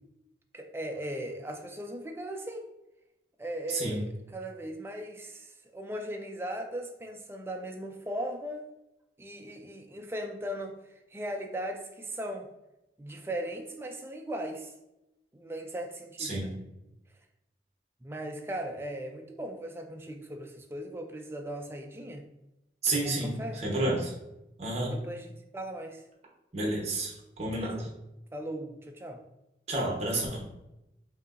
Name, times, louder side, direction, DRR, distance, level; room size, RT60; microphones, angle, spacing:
voice 1, 0.5-2.6 3.4-8.7 9.2-12.5 13.0-14.7 15.3-16.5 18.0-22.2 22.9-23.6 24.9-26.0 27.5-27.9 28.3-29.2, right 1 dB, 15° right, 3 dB, 0.3 m, -38 dB
voice 2, 3.7-4.0 16.2-16.5 22.8-24.1 24.6-24.9 26.5-27.7 29.7-30.4, right 2 dB, 35° right, -2 dB, 1.0 m, -30 dB
5.1 x 2.7 x 2.5 m, 0.92 s
head